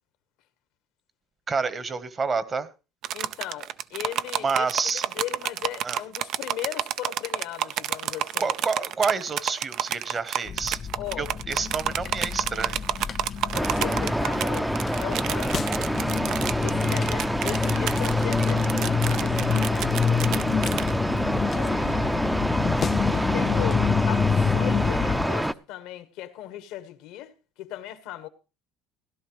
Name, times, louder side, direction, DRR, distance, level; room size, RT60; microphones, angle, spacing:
voice 1, 1.5-2.7 4.4-5.0 5.8-6.0 8.4-10.8 11.2-13.1, right 4 dB, 35° right, 1.2 m, -28 dB
sound 1, 3.0-20.9, right 11 dB, 65° right, 0.6 m, -30 dB
voice 2, 3.1-8.5 8.8-8.9 11.0-11.3 13.5-15.6 16.6-20.6 21.5-22.5 23.1-28.3, left 13 dB, 75° left, 1.3 m, -38 dB
sound 2, 10.5-25.3, left 6 dB, 40° left, 0.5 m, -28 dB
sound 3, 13.5-25.5, equal, 5° right, 0.6 m, -27 dB
16.5 x 11.5 x 3.2 m
supercardioid pair, 90°, 0 cm